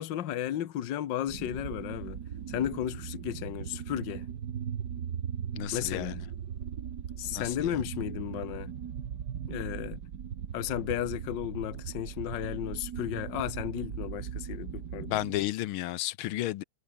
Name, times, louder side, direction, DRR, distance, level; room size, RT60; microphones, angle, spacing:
voice 1, 0.0-2.2 2.5-4.3 5.7-6.2 7.2-8.7 9.5-10.0 10.5-15.2, left 11 dB, 60° left, 1.7 m, -34 dB
sound 1, 1.3-15.4, right 8 dB, 55° right, 1.7 m, -39 dB
voice 2, 5.5-6.2 7.3-7.7 15.1-16.6, left 15 dB, 80° left, 1.5 m, -32 dB
omnidirectional pair, 2.3 m